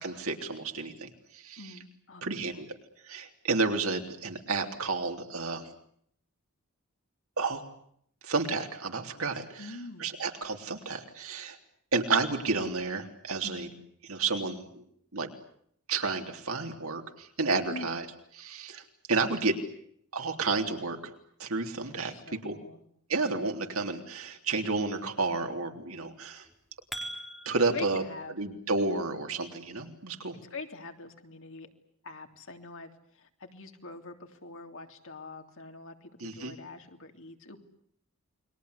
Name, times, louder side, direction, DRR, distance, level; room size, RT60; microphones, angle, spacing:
voice 1, 0.0-1.6 2.2-2.7 3.0-5.7 7.4-7.6 8.2-11.6 11.9-13.7 14.1-14.8 15.1-15.3 15.9-18.1 18.4-18.8 19.1-19.6 20.1-21.1 21.4-22.1 22.4-22.6 23.1-26.5 27.5-28.0 28.4-30.4 36.2-36.5, right 3 dB, 70° right, 4 dB, 3.5 m, -31 dB
voice 2, 1.6-2.7 9.6-10.1 13.4-13.8 17.7-18.0 21.9-22.8 27.7-28.4 30.5-31.7 32.0-37.6, left 3 dB, 65° left, 5 dB, 3.2 m, -44 dB
sound 1, 26.4-27.9, right 1 dB, ahead, 4.5 m, -41 dB
29.5 x 22.5 x 8.3 m, 0.68 s
head